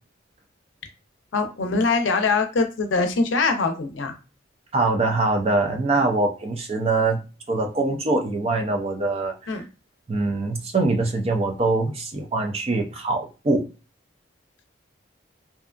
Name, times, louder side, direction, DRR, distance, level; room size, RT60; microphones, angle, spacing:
voice 1, 1.3-4.1 9.5-9.6, left 4 dB, 80° left, 6 dB, 0.5 m, -23 dB
voice 2, 4.7-7.2 7.5-9.6 10.1-13.7, right 2 dB, 30° right, 3 dB, 0.4 m, -23 dB
2.6 x 2.3 x 2.4 m, 0.32 s
head